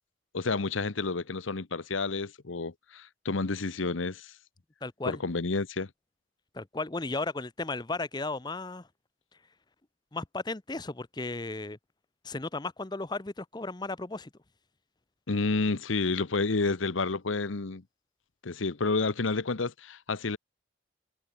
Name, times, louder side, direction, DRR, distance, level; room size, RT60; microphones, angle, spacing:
voice 1, 0.3-4.3 5.1-5.9 15.3-17.8 18.4-20.4, left 3 dB, 85° left, 1.0 m, -30 dB
voice 2, 4.8-5.2 6.5-8.9 10.1-11.8 12.2-14.3, left 3 dB, 20° left, 0.7 m, -35 dB
head